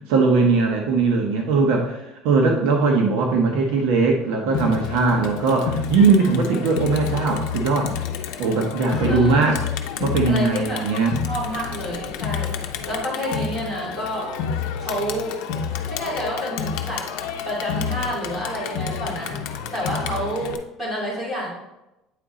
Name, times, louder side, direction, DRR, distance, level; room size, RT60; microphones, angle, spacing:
voice 1, 0.1-7.9 8.4-9.6 10.0-11.2, right 4 dB, 65° right, 1 dB, 0.9 m, -20 dB
Crowd, 4.5-20.6, left 7 dB, 70° left, 0.6 m, -29 dB
voice 2, 8.9-9.5 10.3-10.8 11.2-12.5 12.9-14.3 14.8-15.4 15.8-17.1 17.4-21.5, equal, 10° right, -6 dB, 2.6 m, -29 dB
8.6 x 4.1 x 3.7 m, 0.92 s
cardioid pair, 175°, 0 cm